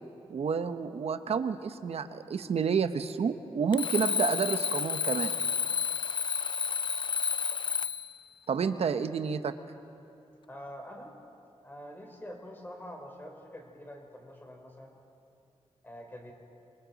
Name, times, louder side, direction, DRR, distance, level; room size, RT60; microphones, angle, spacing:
voice 1, 0.3-5.5 8.5-9.5, right 6 dB, 70° right, 10 dB, 0.9 m, -30 dB
Alarm, 3.7-8.2, left 6 dB, 50° left, 0.4 m, -30 dB
voice 2, 10.5-11.1 11.6-14.9 15.8-16.3, equal, 20° left, 2 dB, 3.5 m, -45 dB
26.5 x 24.5 x 4.0 m, 2.7 s
wide cardioid pair, 125°, 11 cm